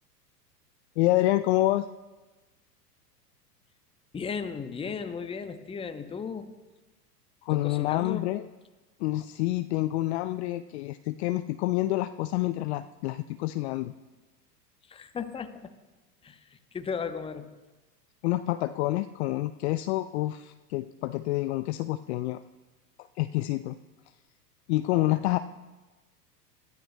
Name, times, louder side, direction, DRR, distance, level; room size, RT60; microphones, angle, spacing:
voice 1, 1.0-1.9 7.4-8.4 9.0-13.9 18.2-22.4 23.0-23.8 24.7-25.4, left 17 dB, 45° left, 11 dB, 0.5 m, -28 dB
voice 2, 4.1-6.5 7.5-8.3 14.9-15.7 16.2-17.5, left 6 dB, 10° left, 9 dB, 0.8 m, -36 dB
22.0 x 14.0 x 2.2 m, 1.2 s
hypercardioid pair, 95°, 48 cm